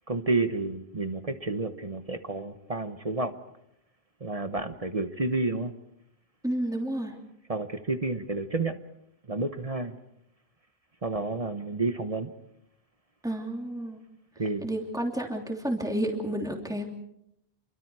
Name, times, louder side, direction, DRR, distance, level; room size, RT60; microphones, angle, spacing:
voice 1, 0.1-3.3 4.2-5.7 7.5-8.8 9.3-9.9 11.0-12.3 14.4-14.7, right 3 dB, 35° right, 9 dB, 1.2 m, -30 dB
voice 2, 6.4-7.2 13.2-14.0 14.6-16.8, right 1 dB, 5° right, 1 dB, 3.0 m, -30 dB
29.0 x 24.0 x 4.8 m, 0.78 s
omnidirectional pair, 1.1 m